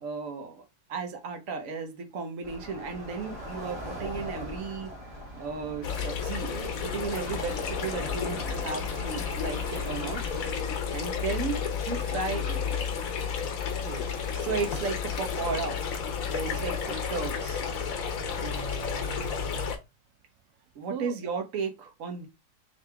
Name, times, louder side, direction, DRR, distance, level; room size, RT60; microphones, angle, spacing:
voice 1, 0.0-4.9 5.4-10.3 10.9-12.8 14.3-15.8 16.3-17.6 20.7-22.3, right 5 dB, 60° right, 1.3 m, -34 dB
sound 1, 2.4-10.6, equal, 25° right, 1.6 m, -40 dB
sound 2, 5.8-19.8, left 6 dB, 65° left, 1.2 m, -32 dB
voice 2, 13.6-14.1 16.4-16.6 18.4-19.7 20.9-21.2, right 9 dB, 90° right, 1.1 m, -40 dB
3.8 x 3.4 x 3.4 m
omnidirectional pair, 1.6 m